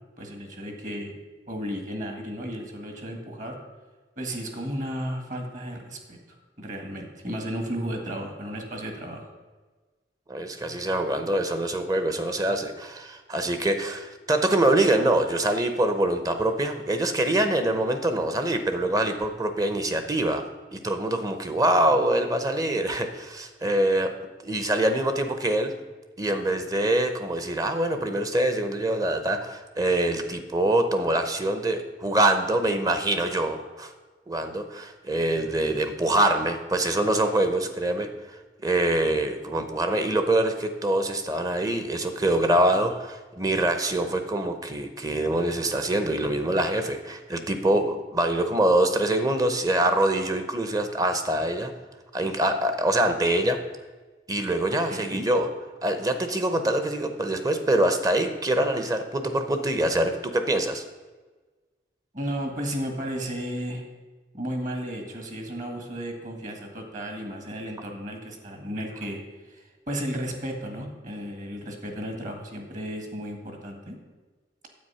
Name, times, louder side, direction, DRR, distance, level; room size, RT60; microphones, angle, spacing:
voice 1, 0.2-1.1 1.5-3.6 4.2-6.2 6.6-9.3 54.9-55.3 62.1-63.8 64.3-69.2 69.5-74.0, equal, 45° right, 4 dB, 1.7 m, -34 dB
voice 2, 10.3-20.4 20.7-24.1 24.4-25.7 26.2-33.9 34.3-38.1 38.6-51.7 52.1-53.6 54.3-55.5 55.8-60.8, right 1 dB, 20° right, 8 dB, 0.8 m, -24 dB
9.5 x 8.1 x 5.6 m, 1.3 s
head